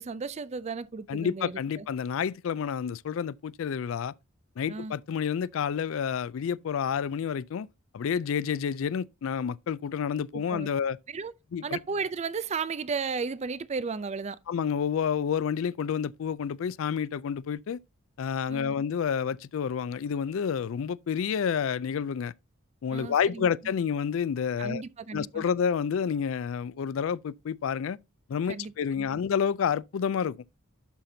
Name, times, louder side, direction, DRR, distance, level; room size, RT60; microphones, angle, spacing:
voice 1, 0.0-1.9 4.7-4.9 10.3-10.7 11.1-11.3 11.6-14.4 18.5-18.7 22.9-23.5 24.6-25.4 28.5-29.1, right 5 dB, 30° right, 0.4 m, -34 dB
voice 2, 1.1-4.1 4.6-7.7 7.9-11.0 11.5-11.8 14.5-17.8 18.2-22.3 22.8-24.8 25.1-28.0 28.3-30.4, left 7 dB, 65° left, 0.3 m, -29 dB
11.5 x 5.8 x 2.7 m
head